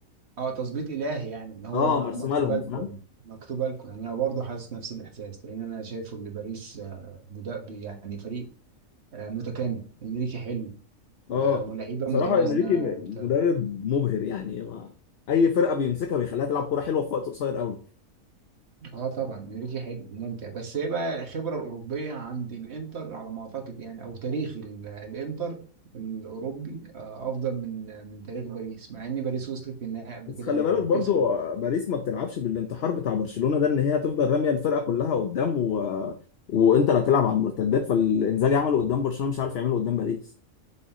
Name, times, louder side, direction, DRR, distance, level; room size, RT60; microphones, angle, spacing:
voice 1, 0.4-8.5 9.1-10.7 11.3-13.3 18.8-25.6 25.9-31.2, right 5 dB, 50° right, 3 dB, 1.7 m, -33 dB
voice 2, 1.7-2.9 11.3-11.6 12.1-14.9 15.3-17.8 30.4-36.1 36.5-40.2, left 6 dB, 55° left, 6 dB, 0.9 m, -24 dB
6.3 x 5.6 x 2.9 m, 0.41 s
omnidirectional pair, 1.4 m